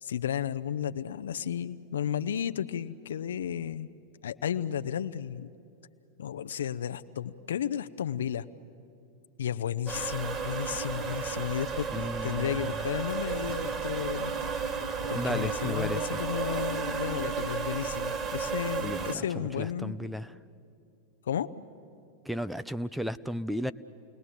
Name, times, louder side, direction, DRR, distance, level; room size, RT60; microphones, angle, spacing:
voice 1, 0.0-3.9 4.2-5.5 6.2-8.5 9.4-14.5 15.1-20.0 21.3-21.5, left 9 dB, 65° left, 11 dB, 0.7 m, -33 dB
sound 1, 9.9-19.1, right 5 dB, 25° right, 1.7 m, -33 dB
voice 2, 11.9-12.8 15.1-16.2 18.8-20.3 22.3-23.7, equal, ahead, 12 dB, 0.5 m, -34 dB
29.5 x 19.5 x 8.1 m, 2.6 s
figure-of-eight pair, 90°, 0 cm